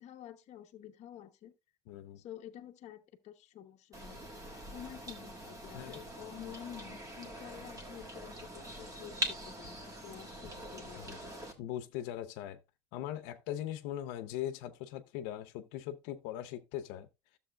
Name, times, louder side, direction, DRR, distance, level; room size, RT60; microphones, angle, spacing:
voice 1, 0.0-1.5 2.2-9.8 10.0-11.5, left 11 dB, 40° left, 0.9 m, -50 dB
voice 2, 1.9-2.2 5.7-6.0 11.0-11.1 11.6-12.6 12.9-17.1, left 12 dB, 75° left, 0.8 m, -40 dB
sound 1, 3.9-11.5, right 1 dB, 20° right, 1.4 m, -43 dB
13.0 x 7.1 x 2.3 m
cardioid pair, 170°, 18 cm